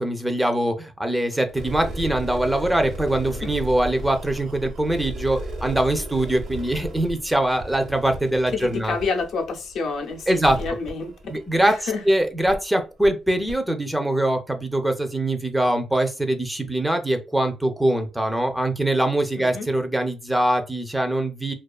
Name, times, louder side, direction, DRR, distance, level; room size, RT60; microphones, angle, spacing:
voice 1, 0.0-9.0 10.3-10.6 11.3-21.5, right 1 dB, 5° right, 0.4 m, -23 dB
sound 1, 1.5-11.9 12.4-12.6 13.0-13.1 13.5-13.6, right 1 dB, 65° right, 0.8 m, -35 dB
voice 2, 8.5-10.3 10.6-11.1 11.6-12.0 19.4-19.7, left 4 dB, 70° left, 0.5 m, -28 dB
2.3 x 2.3 x 2.3 m
cardioid pair, 90°, 0 cm